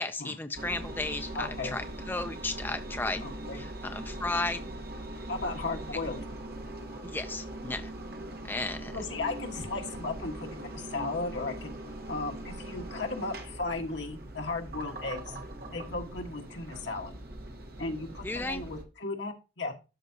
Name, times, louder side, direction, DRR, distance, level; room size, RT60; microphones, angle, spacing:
voice 1, 0.0-3.3 3.5-4.6 7.0-7.9 8.4-8.9 18.2-18.6, left 2 dB, 10° left, 8 dB, 0.4 m, -34 dB
Engine, 0.5-18.8, right 1 dB, 55° right, 1.3 m, -41 dB
voice 2, 1.3-1.7 3.2-3.6 5.3-6.2 8.9-11.7 12.1-15.4 15.7-17.1 17.8-19.7, left 3 dB, 70° left, 3 dB, 1.5 m, -35 dB
12.5 x 4.8 x 2.8 m, 0.29 s
head